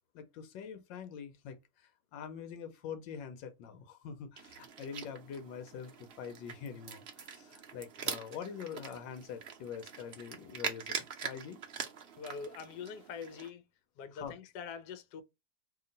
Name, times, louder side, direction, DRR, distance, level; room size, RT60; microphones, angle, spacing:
voice 1, 0.1-1.6 2.1-11.6 14.1-14.3, left 7 dB, 85° left, 1.4 m, -44 dB
sound 1, 4.4-13.5, right 7 dB, 70° right, 0.5 m, -43 dB
voice 2, 12.2-13.6 14.0-15.2, left 6 dB, 70° left, 1.1 m, -44 dB
2.9 x 2.8 x 3.8 m
omnidirectional pair, 2.0 m